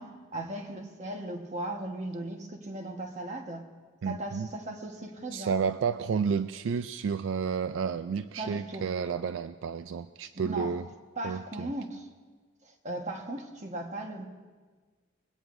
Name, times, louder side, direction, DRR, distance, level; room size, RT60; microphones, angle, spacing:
voice 1, 0.0-3.7 4.0-5.6 8.4-8.9 10.3-10.7 11.2-12.1 12.6-14.3, right 1 dB, 35° right, 3 dB, 1.3 m, -37 dB
voice 2, 4.0-4.5 5.3-10.8 11.2-11.7, right 6 dB, 80° right, 11 dB, 0.4 m, -31 dB
22.0 x 17.0 x 2.6 m, 1.4 s
head